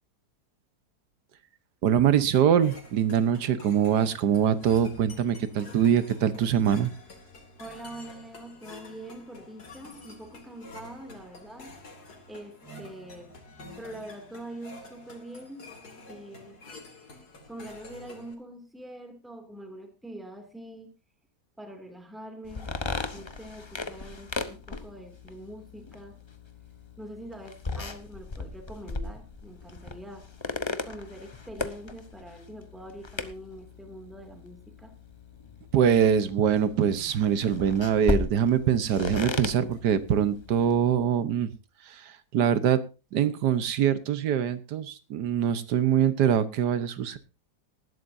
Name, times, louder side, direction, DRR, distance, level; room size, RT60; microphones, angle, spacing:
voice 1, 1.8-6.9 35.7-41.5 41.9-42.8 43.1-47.2, right 9 dB, 90° right, 13 dB, 1.6 m, -24 dB
sound 1, 2.3-18.3, left 2 dB, 70° left, 3.0 m, -48 dB
voice 2, 7.6-11.8 12.3-13.3 13.8-15.7 16.1-16.6 17.5-20.9 21.6-22.7 23.1-26.2 27.0-30.3 30.8-34.9, right 1 dB, ahead, 4 dB, 2.4 m, -44 dB
sound 2, 22.4-41.0, left 3 dB, 25° left, 0.6 m, -37 dB
19.0 x 12.0 x 2.7 m, 0.30 s
omnidirectional pair, 1.7 m